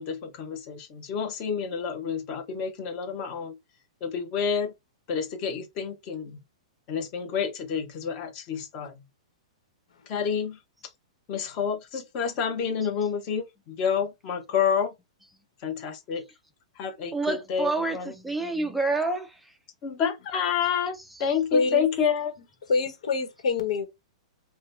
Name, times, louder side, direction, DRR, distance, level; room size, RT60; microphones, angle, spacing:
voice 1, 0.0-3.6 4.0-4.7 5.1-6.4 6.9-8.9 10.1-10.6 11.3-14.9 15.6-16.2 16.8-18.1 19.8-22.3, left 7 dB, 25° left, 0.9 m, -29 dB
voice 2, 17.1-19.3, right 3 dB, ahead, 0.4 m, -28 dB
voice 3, 21.5-21.8 22.7-23.9, left 4 dB, 75° left, 1.2 m, -25 dB
4.9 x 2.2 x 2.5 m
hypercardioid pair, 175°, 4 cm